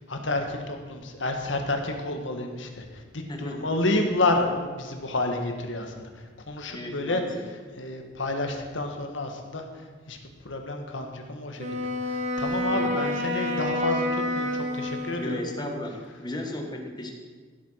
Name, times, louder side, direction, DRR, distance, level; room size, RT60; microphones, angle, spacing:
voice 1, 0.1-7.2 7.8-10.2 10.4-15.3 16.6-16.7, left 2 dB, 70° left, 4 dB, 1.8 m, -30 dB
voice 2, 3.3-3.7 6.7-7.4 12.7-12.9 15.1-17.1, left 1 dB, 20° left, 2 dB, 1.6 m, -35 dB
Wind instrument woodwind instrument, 11.6-15.7, left 1 dB, 35° right, 1.5 m, -29 dB
16.0 x 8.0 x 5.8 m, 1.5 s
head